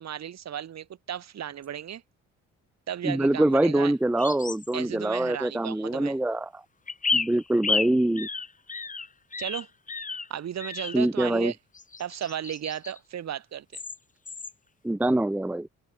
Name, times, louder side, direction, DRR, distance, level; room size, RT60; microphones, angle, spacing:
voice 1, 0.0-2.0 2.9-3.9 4.7-6.2 9.4-9.7 10.3-11.6 12.0-13.8, right 10 dB, 60° right, 3.3 m, -35 dB
voice 2, 3.0-6.6 7.1-8.3 10.9-11.5 14.8-15.7, right 1 dB, 5° right, 0.6 m, -24 dB
sound 1, 4.2-4.7 6.9-10.3 10.6-11.0 11.7-13.0 13.7-14.0 14.3-14.5, left 4 dB, 25° left, 2.0 m, -32 dB
cardioid pair, 90°, 30 cm